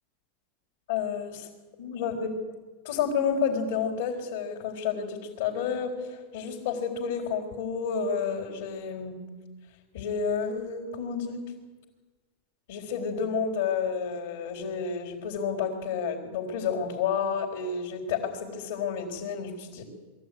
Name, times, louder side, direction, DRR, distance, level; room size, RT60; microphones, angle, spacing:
voice 1, 0.9-1.5 1.8-2.4 2.8-9.2 9.9-11.5 12.7-19.9, left 6 dB, 75° left, -3 dB, 4.4 m, -30 dB
22.0 x 14.5 x 9.9 m, 1.3 s
supercardioid pair, 145°, 0 cm